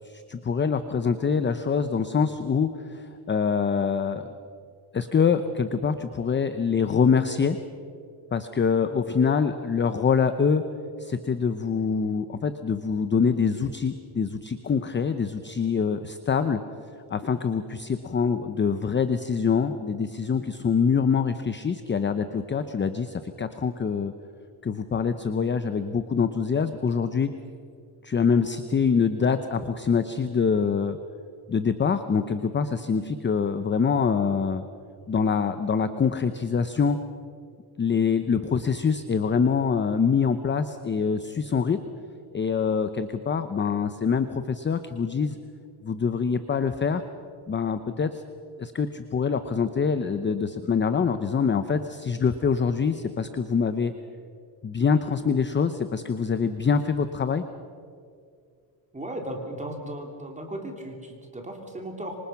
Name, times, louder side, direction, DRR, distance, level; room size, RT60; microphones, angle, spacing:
voice 1, 0.0-4.3 4.9-7.6 8.3-10.6 11.0-16.6 17.1-24.1 24.6-27.3 28.0-31.0 31.5-34.6 35.1-37.0 37.8-41.8 42.3-45.4 45.8-47.0 47.5-48.2 48.6-53.9 54.6-57.4, left 6 dB, 25° left, 10 dB, 0.7 m, -25 dB
voice 2, 58.9-62.2, right 1 dB, 15° right, 2 dB, 3.2 m, -36 dB
26.0 x 25.0 x 5.9 m, 2.3 s
cardioid pair, 150°, 48 cm